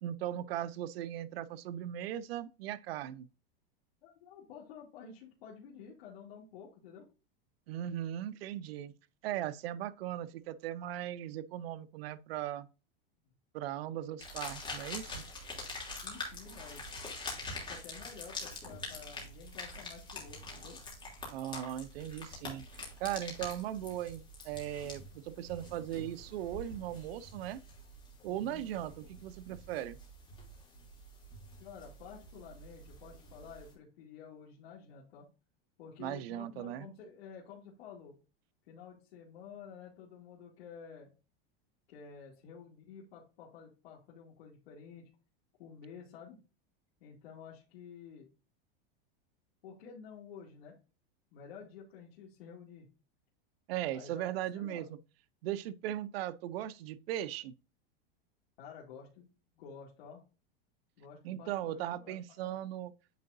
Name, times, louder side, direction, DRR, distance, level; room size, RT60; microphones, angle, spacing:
voice 1, 0.0-3.3 7.7-8.9 9.2-12.7 13.5-15.2 21.3-27.6 28.2-30.0 36.0-36.9 53.7-55.0 55.4-57.5 61.2-62.9, right 12 dB, 80° right, 0.6 m, -38 dB
voice 2, 4.0-7.1 16.0-16.8 17.6-20.8 28.3-28.7 31.6-35.3 35.8-38.1 38.7-41.1 41.9-45.1 45.6-46.4 47.0-48.3 49.6-50.8 51.3-52.9 53.9-54.9 58.6-59.3 59.5-60.2 61.0-62.7, left 6 dB, 85° left, 2.3 m, -51 dB
sound 1, 14.2-33.7, left 2 dB, 15° left, 2.9 m, -46 dB
9.3 x 4.6 x 2.6 m
supercardioid pair, 150°, 30 cm